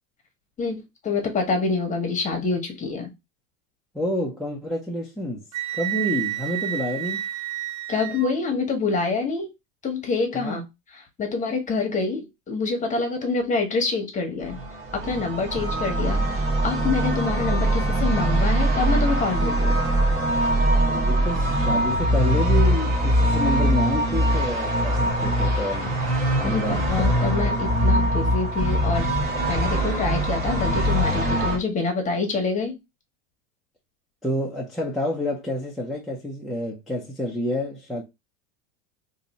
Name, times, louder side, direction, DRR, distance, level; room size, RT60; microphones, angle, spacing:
voice 1, 0.6-3.1 7.9-9.5 9.8-10.6 10.9-14.6 14.9-19.7 26.4-32.7, left 4 dB, 20° left, 1.0 m, -26 dB
voice 2, 3.9-5.4 5.7-7.2 10.3-10.7 20.9-25.9 26.4-27.0 34.2-38.0, equal, ahead, 0.4 m, -28 dB
Wind instrument woodwind instrument, 5.5-8.3, right 12 dB, 80° right, 0.5 m, -30 dB
sound 1, 14.4-31.6, right 1 dB, 35° right, 1.3 m, -22 dB
2.7 x 2.6 x 4.0 m
supercardioid pair, 135°, 39 cm